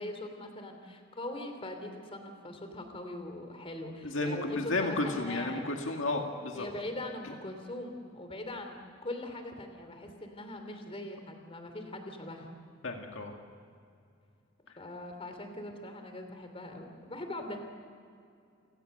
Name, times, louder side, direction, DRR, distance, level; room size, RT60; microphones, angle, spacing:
voice 1, 0.0-5.7 6.5-12.6 14.8-17.6, left 1 dB, 30° left, 6 dB, 3.0 m, -41 dB
voice 2, 4.0-6.7 7.2-7.3 12.8-13.4 14.7-14.8, left 2 dB, 70° left, 2 dB, 2.1 m, -32 dB
29.5 x 17.5 x 6.7 m, 2.4 s
head